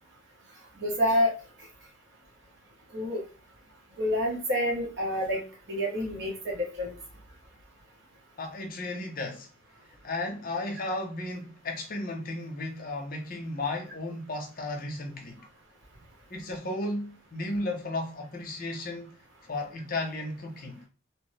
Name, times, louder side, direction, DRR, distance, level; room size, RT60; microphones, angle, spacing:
voice 1, 0.8-1.3 2.9-3.2 4.0-5.4 5.7-6.9, equal, 55° right, 0.9 m, -27 dB
voice 2, 8.4-9.5 10.0-15.4 16.3-19.1 19.5-20.8, left 2 dB, 40° left, 0.6 m, -34 dB
2.9 x 2.1 x 3.1 m
head